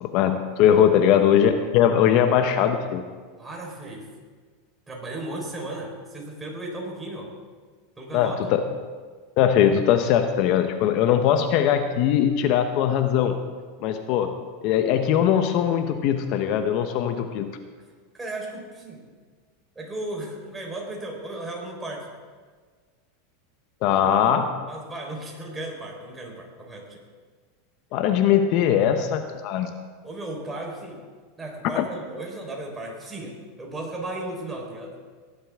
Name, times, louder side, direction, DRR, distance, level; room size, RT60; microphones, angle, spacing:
voice 1, 0.0-3.0 8.1-8.6 9.4-13.3 13.8-14.3 14.6-17.5 23.8-24.5 27.9-29.7 31.8-31.9, left 9 dB, 55° left, 7 dB, 0.9 m, -20 dB
voice 2, 3.4-4.1 4.9-7.3 8.0-8.4 18.1-19.0 19.8-22.1 24.7-27.0 30.0-31.0 31.4-34.9, right 1 dB, 15° right, -1 dB, 4.3 m, -35 dB
18.5 x 11.0 x 3.7 m, 1.5 s
hypercardioid pair, 115°, 0 cm